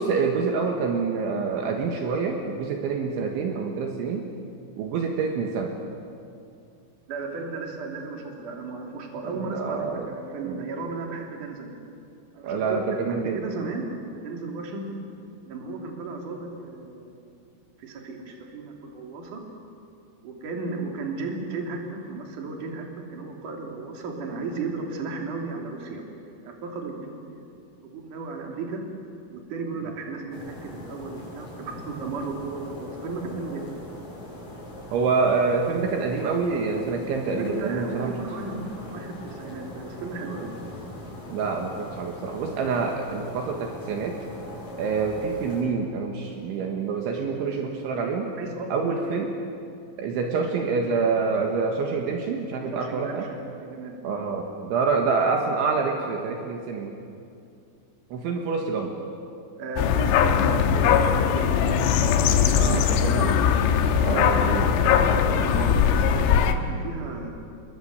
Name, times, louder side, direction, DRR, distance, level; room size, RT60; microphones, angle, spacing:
voice 1, 0.0-4.3 4.8-5.7 9.2-10.1 10.5-10.6 12.4-13.4 34.9-38.2 41.3-44.2 44.8-48.3 48.7-49.3 50.0-53.3 54.0-57.0 58.1-58.9 62.5-63.4 64.0-65.7, right 4 dB, 70° right, 2 dB, 3.8 m, -27 dB
voice 2, 7.1-11.7 12.3-13.9 14.1-15.0 15.5-17.3 17.8-19.4 20.2-27.5 27.8-28.8 29.3-33.8 37.4-40.5 48.4-49.2 52.7-54.0 56.0-56.1 59.6-62.0 62.7-63.3 65.3-67.3, right 3 dB, 45° right, 1 dB, 3.9 m, -35 dB
sound 1, 30.3-45.6, left 1 dB, 35° left, 7.4 m, -41 dB
sound 2, 59.8-66.5, left 8 dB, 90° left, 3.8 m, -20 dB
27.5 x 22.0 x 8.1 m, 2.5 s
omnidirectional pair, 5.8 m